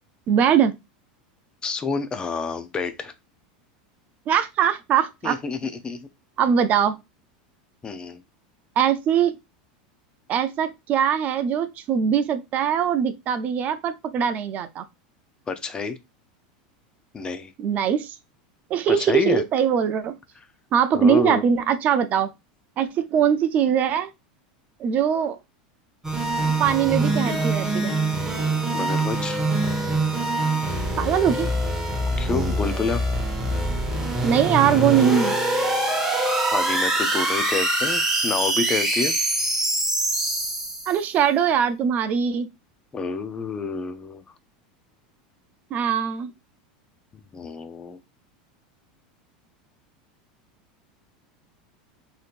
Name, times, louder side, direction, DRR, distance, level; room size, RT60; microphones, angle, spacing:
voice 1, 0.3-0.7 4.3-5.4 6.4-7.0 8.8-9.3 10.3-14.8 17.6-18.1 18.7-20.1 20.7-22.3 22.8-24.1 24.8-25.4 26.6-28.0 31.0-31.5 34.2-35.4 40.9-42.5 45.7-46.3, right 8 dB, 40° right, 0.4 m, -21 dB
voice 2, 1.6-3.1 5.2-6.1 7.8-8.2 15.5-16.0 17.1-17.5 18.9-19.4 20.9-21.4 28.7-29.4 32.2-33.0 36.5-39.1 42.9-44.2 47.3-48.0, left 4 dB, 20° left, 0.4 m, -28 dB
sound 1, 26.0-41.0, right 2 dB, 10° right, 0.9 m, -24 dB
3.5 x 2.7 x 2.4 m
supercardioid pair, 120°, 4 cm